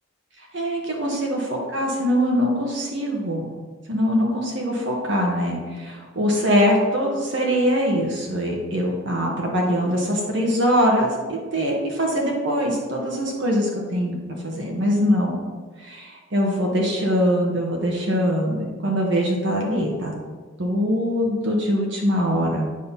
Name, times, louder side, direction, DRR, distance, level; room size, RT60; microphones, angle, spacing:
voice 1, 0.5-1.4 1.7-3.5 3.9-14.2 14.4-15.4 15.8-20.1 20.6-22.7, equal, 65° right, -1 dB, 1.1 m, -22 dB
8.5 x 2.9 x 5.5 m, 1.4 s
head